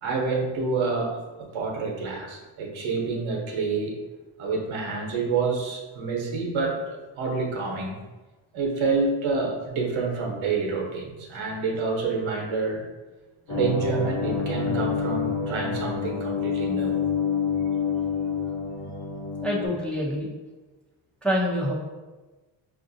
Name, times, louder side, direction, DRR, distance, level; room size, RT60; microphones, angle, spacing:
voice 1, 0.0-3.9 4.4-7.9 8.5-12.8 13.5-16.9, right 4 dB, 75° right, 0 dB, 1.0 m, -28 dB
sound 1, 13.5-19.7, left 6 dB, 45° left, 0.9 m, -27 dB
voice 2, 19.4-20.3 21.2-21.7, equal, ahead, -5 dB, 0.5 m, -26 dB
5.2 x 2.5 x 2.6 m, 1.2 s
cardioid pair, 130°, 47 cm